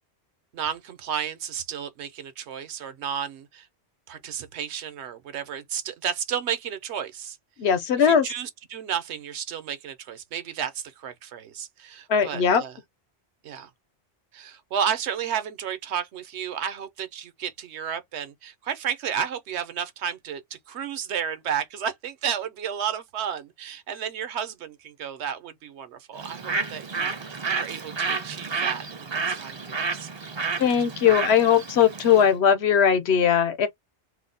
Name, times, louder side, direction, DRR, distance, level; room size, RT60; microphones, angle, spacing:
voice 1, 0.5-3.7 4.1-7.4 8.0-12.8 13.4-13.7 14.3-30.1, right 8 dB, 85° right, 1.0 m, -32 dB
voice 2, 7.6-8.3 12.1-12.6 30.6-33.7, left 8 dB, 75° left, 0.9 m, -19 dB
Bird, 26.2-32.3, right 4 dB, 40° right, 0.4 m, -30 dB
2.7 x 2.1 x 3.9 m
omnidirectional pair, 1.1 m